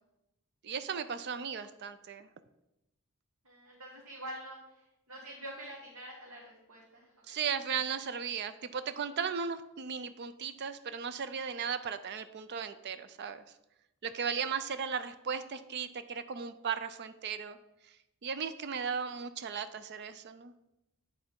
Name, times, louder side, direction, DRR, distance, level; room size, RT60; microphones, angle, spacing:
voice 1, 0.6-2.3 7.3-13.4 14.0-17.6 18.2-20.5, right 6 dB, 50° right, 12 dB, 0.4 m, -36 dB
voice 2, 3.4-7.4 7.7-7.8, right 1 dB, 90° right, -4 dB, 1.5 m, -47 dB
8.7 x 3.4 x 5.3 m, 0.90 s
head